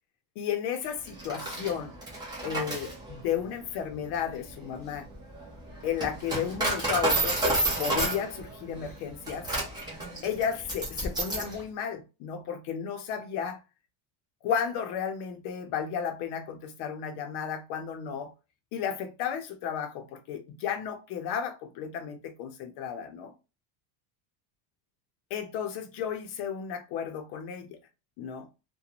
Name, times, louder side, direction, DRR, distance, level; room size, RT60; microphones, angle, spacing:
voice 1, 0.4-1.9 2.4-5.1 5.8-9.5 10.2-13.6 14.4-18.3 18.7-23.3 25.3-27.8 28.2-28.5, left 8 dB, 55° left, 0.6 m, -33 dB
Coin (dropping), 1.1-11.6, right 2 dB, 10° right, 0.5 m, -31 dB
2.4 x 2.2 x 2.8 m
cardioid pair, 165°, 50 cm